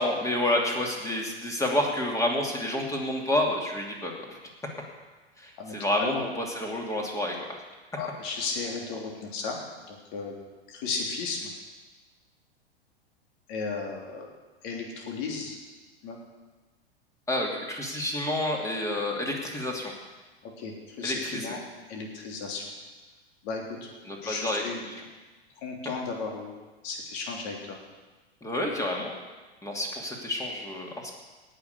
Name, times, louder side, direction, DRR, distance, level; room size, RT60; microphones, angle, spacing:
voice 1, 0.0-4.1 5.4-7.3 17.3-19.9 21.0-21.6 24.0-24.9 28.4-29.1 29.6-31.1, left 1 dB, 10° left, 0 dB, 2.7 m, -29 dB
voice 2, 5.6-6.2 7.9-9.6 9.9-10.3 10.7-11.5 13.5-14.3 14.6-15.6 16.0-16.2 20.6-21.6 21.9-22.6 23.4-23.9 24.2-24.8 25.6-27.8, left 4 dB, 45° left, 0 dB, 3.2 m, -34 dB
18.0 x 6.6 x 8.2 m, 1.3 s
figure-of-eight pair, 95°, 32 cm